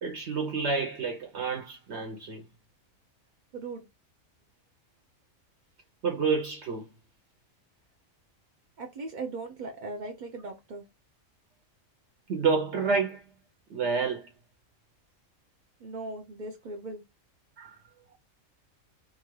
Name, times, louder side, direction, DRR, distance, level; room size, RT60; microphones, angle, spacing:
voice 1, 0.0-2.4 6.0-6.8 12.3-13.2 13.7-14.3 17.6-17.8, right 5 dB, 60° right, 0.9 m, -29 dB
voice 2, 3.5-3.9 8.8-10.8 15.8-17.0, right 3 dB, 75° right, 0.4 m, -38 dB
2.8 x 2.4 x 3.0 m
omnidirectional pair, 1.4 m